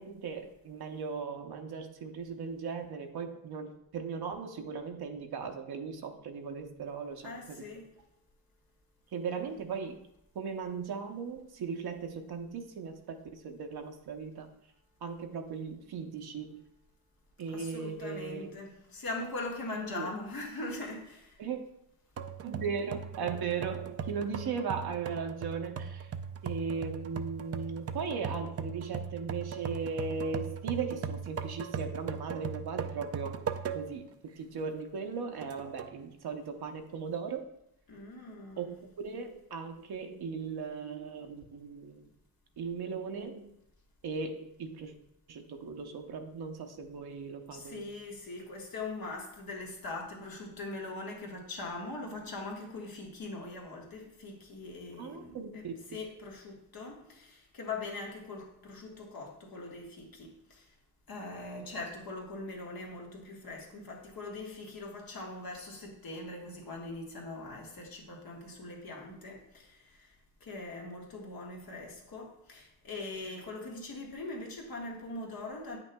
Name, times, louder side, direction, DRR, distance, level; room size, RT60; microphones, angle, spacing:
voice 1, 0.0-7.7 9.1-10.0 10.3-14.5 15.0-16.6 17.4-18.5 19.7-20.1 21.4-21.6 22.4-26.1 26.4-33.5 33.7-34.1 34.4-37.5 38.6-42.1 42.6-43.5 44.0-44.9 45.3-47.9 55.0-56.0, right 5 dB, 80° right, 4 dB, 0.7 m, -38 dB
voice 2, 7.2-7.9 17.5-21.4 37.9-38.7 47.5-55.6 55.9-60.7 61.1-75.8, left 2 dB, 65° left, -1 dB, 1.5 m, -41 dB
sound 1, 22.2-34.1 34.5-34.6 35.4-36.0, right 6 dB, 40° right, 0.4 m, -39 dB
9.1 x 5.9 x 2.2 m, 0.80 s
wide cardioid pair, 115°, 38 cm